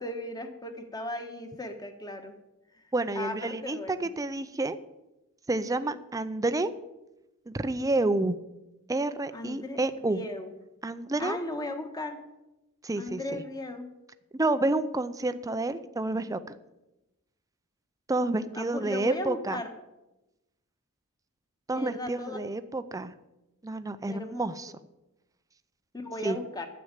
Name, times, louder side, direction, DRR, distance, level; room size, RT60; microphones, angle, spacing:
voice 1, 0.0-2.3 2.7-2.8 3.1-4.1 9.3-10.5 11.2-12.2 13.0-13.9 18.5-19.7 21.7-22.4 24.1-24.5 25.9-26.7, left 1 dB, 20° left, 6 dB, 1.3 m, -37 dB
voice 2, 2.9-4.8 5.5-6.7 7.5-8.4 8.9-10.2 10.8-11.4 12.8-13.4 14.3-16.6 18.1-19.6 21.7-23.1 23.6-24.7 26.2-26.4, right 2 dB, 15° right, 11 dB, 0.5 m, -29 dB
9.8 x 7.8 x 8.8 m, 0.97 s
head